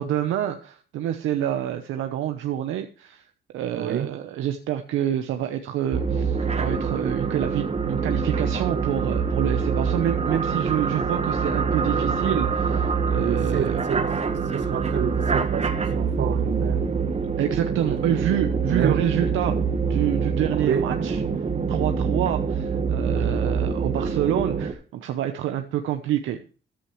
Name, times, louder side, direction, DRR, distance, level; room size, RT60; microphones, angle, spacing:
voice 1, 0.0-3.2 3.5-13.8 17.4-19.6 19.9-21.2 21.7-26.4, right 11 dB, 85° right, 0.9 m, -27 dB
voice 2, 3.7-4.1 13.2-16.9 17.9-18.2 18.7-19.0 20.7-20.9 23.1-23.4, right 8 dB, 60° right, 1.0 m, -29 dB
sound 1, 5.9-24.7, right 5 dB, 35° right, 1.3 m, -25 dB
13.5 x 10.0 x 3.1 m
cardioid pair, 90°, 20 cm